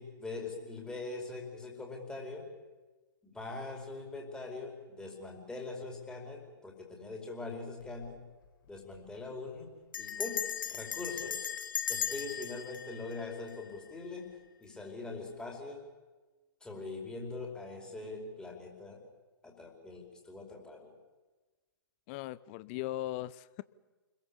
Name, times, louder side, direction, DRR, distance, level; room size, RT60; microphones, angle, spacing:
voice 1, 0.0-2.5 3.2-8.2 8.7-9.7 10.0-11.5 11.9-15.9 16.6-19.0 19.4-20.9, left 3 dB, 5° left, 0 dB, 4.8 m, -42 dB
Bell, 7.8-8.2 8.4-8.5 8.8-9.1 9.9-14.0, left 8 dB, 60° left, 1.3 m, -38 dB
voice 2, 22.1-23.6, left 15 dB, 30° left, 18 dB, 0.7 m, -38 dB
29.0 x 22.0 x 7.2 m, 1.2 s
figure-of-eight pair, 120°, 12 cm